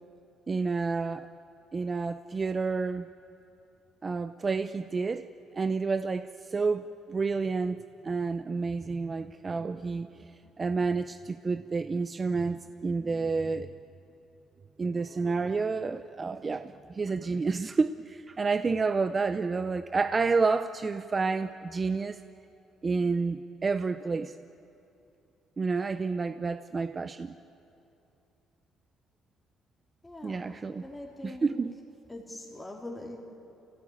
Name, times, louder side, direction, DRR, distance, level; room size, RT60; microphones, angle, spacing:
voice 1, 0.5-1.3 1.7-3.1 4.0-5.3 5.5-10.3 10.6-13.7 14.8-22.2 22.8-24.4 25.6-27.4 30.2-30.8 31.2-31.7, right 4 dB, 35° right, 11 dB, 0.6 m, -29 dB
voice 2, 30.0-31.6 32.1-33.2, left 1 dB, 15° left, -2 dB, 3.4 m, -43 dB
26.0 x 16.5 x 8.8 m, 2.7 s
cardioid pair, 85°, 0 cm